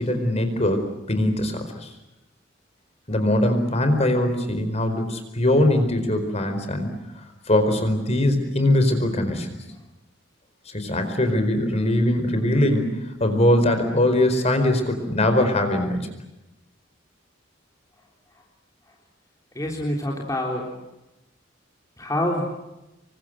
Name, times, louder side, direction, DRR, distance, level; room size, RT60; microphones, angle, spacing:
voice 1, 0.0-1.9 3.1-6.9 7.5-9.6 10.7-16.1, left 1 dB, 35° left, 7 dB, 4.7 m, -21 dB
voice 2, 19.5-20.7 22.0-22.5, left 1 dB, 15° left, -1 dB, 3.6 m, -26 dB
27.5 x 24.0 x 7.6 m, 0.96 s
head